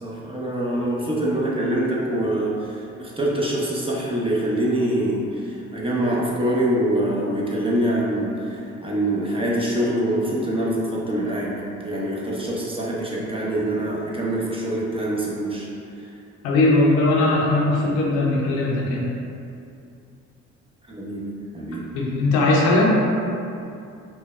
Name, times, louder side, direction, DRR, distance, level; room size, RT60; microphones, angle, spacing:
voice 1, 0.0-2.7 3.0-15.7 20.9-21.2 21.5-21.8, right 1 dB, 15° right, -5 dB, 0.8 m, -24 dB
voice 2, 16.4-19.0 21.9-22.9, left 2 dB, 80° left, -4 dB, 0.7 m, -19 dB
5.2 x 2.1 x 2.3 m, 2.6 s
figure-of-eight pair, 45°, 39 cm